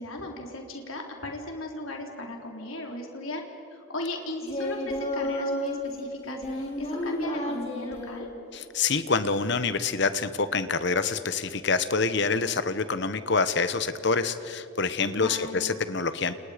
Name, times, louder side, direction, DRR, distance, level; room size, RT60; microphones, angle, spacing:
voice 1, 0.0-3.4 3.7-8.3 15.1-15.7, left 1 dB, 75° left, 1 dB, 3.9 m, -37 dB
Singing, 4.4-5.8 6.3-8.2 9.1-9.6, left 1 dB, 30° left, 4.4 m, -32 dB
voice 2, 8.5-16.3, left 4 dB, 55° left, 12 dB, 1.1 m, -26 dB
29.5 x 29.0 x 5.2 m, 2.6 s
head